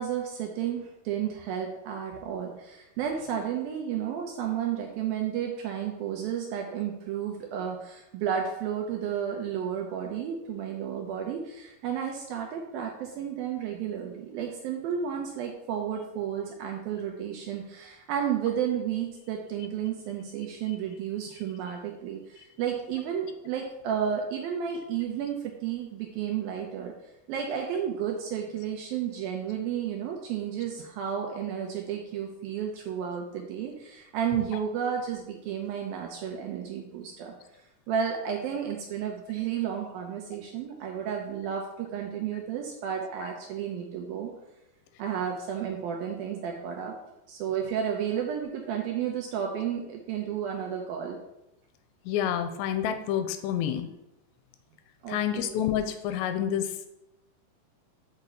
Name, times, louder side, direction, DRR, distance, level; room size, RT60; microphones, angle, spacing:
voice 1, 0.0-26.9 27.3-37.3 37.9-44.3 45.0-47.0 47.3-51.2 55.0-55.6, right 8 dB, 75° right, 2 dB, 2.2 m, -32 dB
voice 2, 52.1-53.9 55.1-56.9, left 10 dB, 90° left, 9 dB, 2.8 m, -28 dB
6.7 x 5.8 x 6.7 m, 0.89 s
omnidirectional pair, 5.0 m